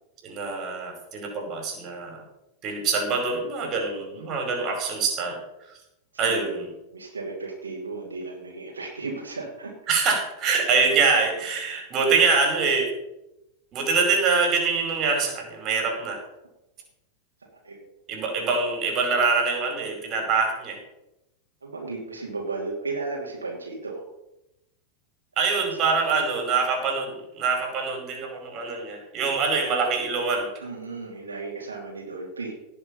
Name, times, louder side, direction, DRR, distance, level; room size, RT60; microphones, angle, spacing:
voice 1, 0.2-2.2 2.6-5.4 6.2-6.7 9.9-12.9 13.7-16.2 18.1-20.8 25.4-30.5, right 4 dB, 35° right, 2 dB, 5.1 m, -24 dB
voice 2, 6.1-6.7 6.9-9.7 17.6-17.8 21.6-24.0 25.6-26.5 30.6-32.5, right 3 dB, 75° right, -2 dB, 2.9 m, -35 dB
18.0 x 7.0 x 5.5 m, 0.89 s
figure-of-eight pair, 90°, 0 cm